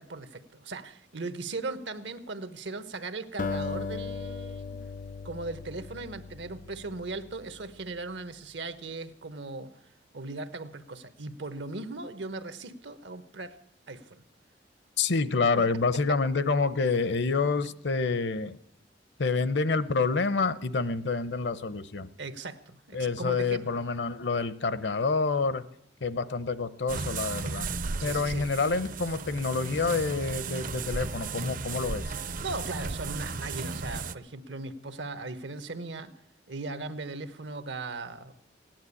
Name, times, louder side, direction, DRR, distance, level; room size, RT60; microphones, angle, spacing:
voice 1, 0.0-4.8 5.2-9.8 10.1-13.6 13.9-14.2 15.6-15.7 16.1-16.2 22.2-23.7 28.0-28.4 32.4-36.1 36.5-38.4, right 3 dB, 80° right, 12 dB, 1.1 m, -38 dB
Acoustic guitar, 3.4-7.8, left 4 dB, 45° left, 0.5 m, -37 dB
voice 2, 15.0-18.6 19.2-22.1 22.9-25.6 26.0-27.7 28.0-32.0, left 4 dB, 75° left, 15 dB, 0.8 m, -28 dB
sound 1, 26.9-34.1, right 4 dB, 50° right, 0.5 m, -35 dB
16.5 x 10.5 x 8.3 m, 0.72 s
head